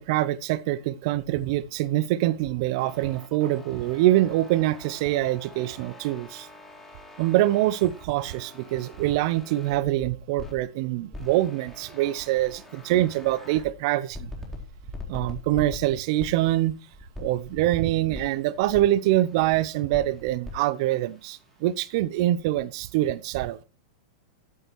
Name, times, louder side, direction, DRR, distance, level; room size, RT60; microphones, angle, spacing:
voice 1, 0.0-6.5 7.2-14.3 15.1-16.8 17.2-23.6, right 15 dB, 55° right, 0.7 m, -24 dB
sound 1, 2.8-10.6 11.1-13.7 14.1-17.8 18.1-19.6 19.9-22.0, left 2 dB, 10° left, 4.2 m, -44 dB
13.5 x 11.0 x 3.1 m
hypercardioid pair, 105°, 3 cm